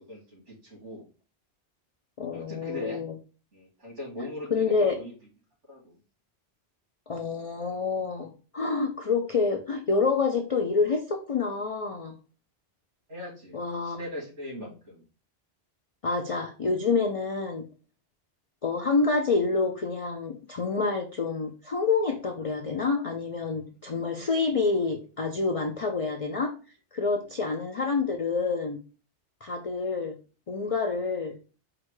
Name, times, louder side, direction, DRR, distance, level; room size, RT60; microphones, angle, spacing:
voice 1, 0.1-1.0 2.3-3.0 3.5-5.1 5.7-6.0 13.1-15.0 27.2-27.3 30.0-30.1, left 1 dB, 80° right, -4 dB, 2.6 m, -40 dB
voice 2, 2.2-3.1 4.5-5.0 7.1-12.1 13.5-14.0 16.0-17.6 18.6-26.5 26.9-28.8 29.4-30.1 30.5-31.4, left 4 dB, 60° left, 4 dB, 0.3 m, -27 dB
4.8 x 2.2 x 4.6 m, 0.35 s
omnidirectional pair, 1.2 m